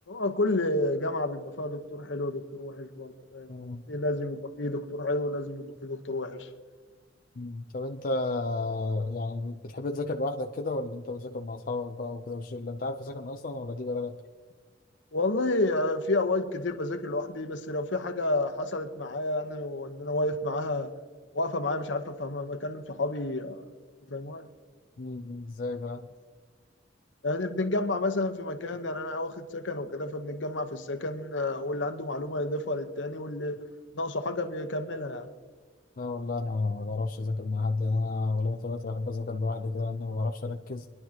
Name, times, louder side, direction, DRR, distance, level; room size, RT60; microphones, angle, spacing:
voice 1, 0.1-3.6 3.9-6.5 15.1-20.9 21.3-23.6 24.1-24.5 27.2-33.6 33.9-35.3, left 2 dB, 75° left, 1.0 m, -30 dB
voice 2, 3.5-3.8 7.4-14.2 25.0-26.1 36.0-40.9, left 3 dB, 50° left, 0.6 m, -32 dB
24.0 x 11.0 x 2.9 m
head